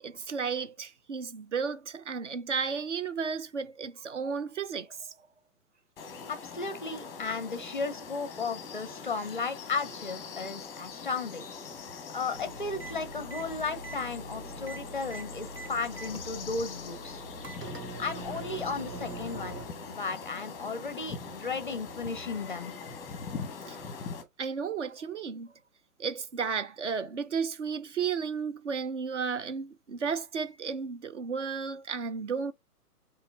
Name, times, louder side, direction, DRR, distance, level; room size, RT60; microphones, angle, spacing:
voice 1, 0.0-5.1 23.7-23.8 24.4-25.5 26.0-32.5, right 6 dB, 50° right, 0.6 m, -33 dB
sound 1, 6.0-24.2, left 5 dB, 5° left, 0.8 m, -43 dB
voice 2, 6.3-11.4 12.1-17.2 18.0-19.6 19.9-22.7, left 4 dB, 35° left, 0.5 m, -35 dB
sound 2, 12.3-19.7, right 2 dB, 85° right, 1.5 m, -43 dB
sound 3, 12.4-13.6 14.8-16.4 17.2-22.7, right 5 dB, 20° right, 0.9 m, -56 dB
7.9 x 3.0 x 2.2 m
figure-of-eight pair, 130°, 46 cm